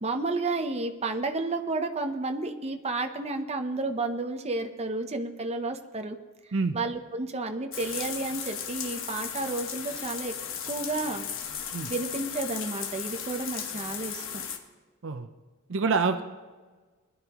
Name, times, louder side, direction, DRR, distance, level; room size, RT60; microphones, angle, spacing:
voice 1, 0.0-6.2 6.7-10.3 10.6-11.3 11.9-14.4, right 3 dB, 30° right, 5 dB, 0.8 m, -31 dB
sound 1, 7.7-14.6, left 8 dB, 65° left, 1.1 m, -36 dB
voice 2, 15.7-16.2, right 4 dB, 60° right, 8 dB, 0.7 m, -26 dB
21.0 x 11.0 x 3.0 m, 1.4 s
head